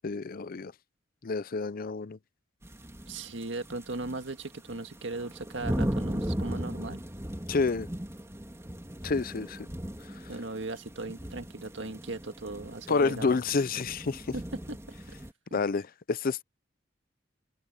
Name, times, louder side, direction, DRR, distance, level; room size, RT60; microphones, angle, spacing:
voice 1, 0.0-0.7 1.2-2.2 7.5-7.9 9.0-9.7 12.9-14.2 15.5-16.4, left 4 dB, 50° left, 0.5 m, -29 dB
sound 1, 2.6-4.3 4.7-15.3, equal, 15° right, 2.3 m, -37 dB
voice 2, 3.1-7.0 10.3-13.4 14.3-14.8, right 2 dB, 70° right, 1.8 m, -38 dB
open air
head